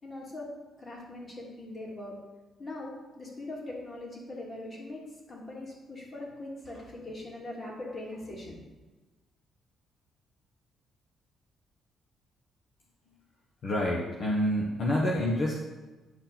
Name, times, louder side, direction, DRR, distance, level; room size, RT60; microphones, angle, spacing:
voice 1, 0.0-0.5 0.8-2.1 2.6-8.6, left 2 dB, 35° left, -3 dB, 3.1 m, -41 dB
voice 2, 13.6-15.5, left 1 dB, 60° left, -3 dB, 1.4 m, -27 dB
10.0 x 4.6 x 5.9 m, 1.2 s
cardioid pair, 90°, 0 cm